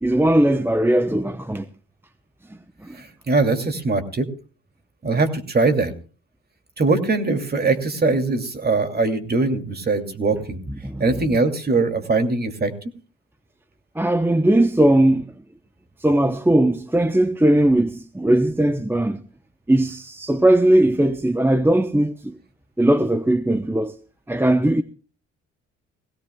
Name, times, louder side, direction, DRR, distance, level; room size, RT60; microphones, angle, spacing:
voice 1, 0.0-1.7 2.8-3.0 10.8-11.0 14.0-15.3 16.0-19.2 19.7-22.3 22.8-24.0 24.3-24.8, right 1 dB, 5° right, 0.8 m, -19 dB
voice 2, 2.9-4.3 5.0-5.9 6.8-10.6 11.0-12.7, right 3 dB, 30° right, 2.6 m, -21 dB
20.5 x 16.5 x 2.3 m
cardioid pair, 90°, 30 cm